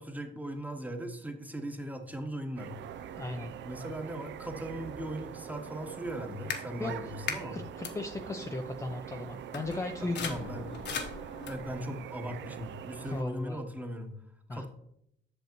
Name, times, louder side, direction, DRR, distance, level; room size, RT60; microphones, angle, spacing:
voice 1, 0.0-2.8 3.6-7.6 10.3-10.7 11.5-14.2 14.5-14.7, equal, 10° right, 5 dB, 1.1 m, -38 dB
sound 1, 2.6-13.2, right 9 dB, 65° right, 0.5 m, -43 dB
voice 2, 3.2-3.5 6.8-6.9 7.5-10.4 13.0-13.6 14.5-14.7, left 2 dB, 15° left, 5 dB, 0.5 m, -36 dB
sound 2, 6.5-6.6 7.3-7.4 7.8-7.9 9.0-9.1 9.5-11.8, left 6 dB, 60° left, 1.1 m, -38 dB
8.0 x 6.3 x 3.0 m, 0.75 s
cardioid pair, 90°, 20 cm